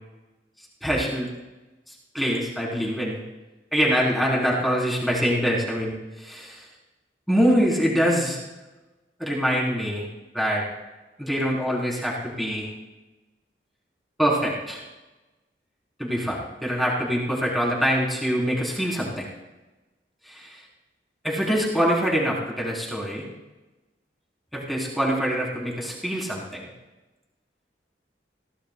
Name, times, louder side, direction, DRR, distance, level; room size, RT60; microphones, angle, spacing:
voice 1, 0.8-1.3 2.1-3.2 3.7-6.6 7.3-8.4 9.2-10.1 10.3-10.6 11.2-12.7 14.2-14.8 16.0-19.2 20.3-20.4 21.2-23.2 24.5-26.7, equal, ahead, -4 dB, 3.4 m, -24 dB
21.5 x 17.5 x 2.2 m, 1.1 s
head